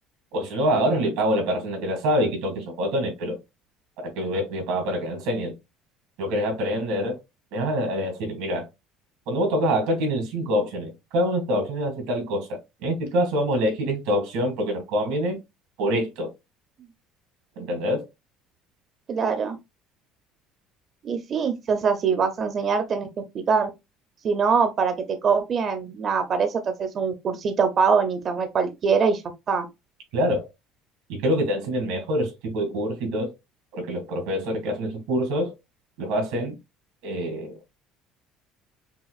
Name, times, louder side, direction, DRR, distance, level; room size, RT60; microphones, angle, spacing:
voice 1, 0.3-3.4 4.0-5.5 6.2-7.2 7.5-8.7 9.3-15.4 15.8-16.3 17.6-18.1 30.1-30.5 31.1-33.3 33.7-35.5 36.0-36.6 37.0-37.6, equal, 90° right, 1.9 m, -25 dB
voice 2, 19.1-19.6 21.0-23.1 23.3-23.7 24.2-29.2 29.5-29.7, right 5 dB, 30° right, 0.4 m, -23 dB
5.6 x 2.3 x 2.3 m
cardioid pair, 170°, 0 cm